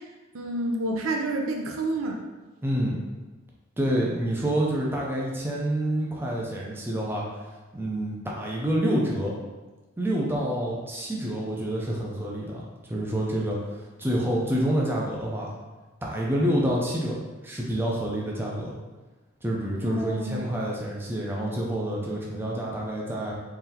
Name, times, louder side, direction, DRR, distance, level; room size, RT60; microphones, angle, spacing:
voice 1, 0.3-2.2 19.8-20.5, right 1 dB, 85° right, 1 dB, 0.6 m, -29 dB
voice 2, 2.6-3.0 3.8-7.2 7.7-9.3 10.0-15.5 16.0-18.7 19.4-23.3, right 1 dB, 10° right, -3 dB, 0.5 m, -28 dB
3.9 x 3.2 x 2.8 m, 1.2 s
head